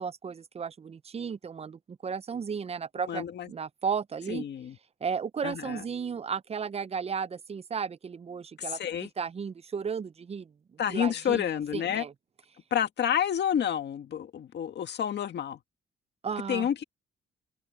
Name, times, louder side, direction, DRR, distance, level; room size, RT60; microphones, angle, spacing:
voice 1, 0.0-4.4 5.0-8.8 9.2-10.5 10.9-11.4 11.7-12.1 16.2-16.7, right 6 dB, 30° right, 0.5 m, -34 dB
voice 2, 3.1-3.5 4.3-4.8 5.4-5.8 8.6-9.1 10.8-12.0 12.7-15.6 16.5-16.8, left 9 dB, 60° left, 1.9 m, -29 dB
cardioid pair, 90°, 20 cm